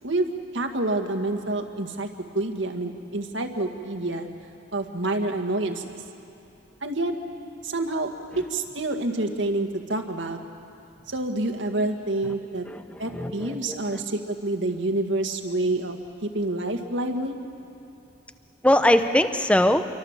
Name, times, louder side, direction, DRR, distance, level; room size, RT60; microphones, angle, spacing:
voice 1, 0.0-2.1 2.3-4.3 4.7-6.0 6.8-7.1 7.6-8.1 8.5-10.4 11.1-12.7 13.0-17.4, right 2 dB, 70° right, 5 dB, 1.9 m, -28 dB
voice 2, 12.6-14.0 18.6-19.9, left 1 dB, 5° left, 9 dB, 0.7 m, -22 dB
28.0 x 24.0 x 7.4 m, 2.7 s
head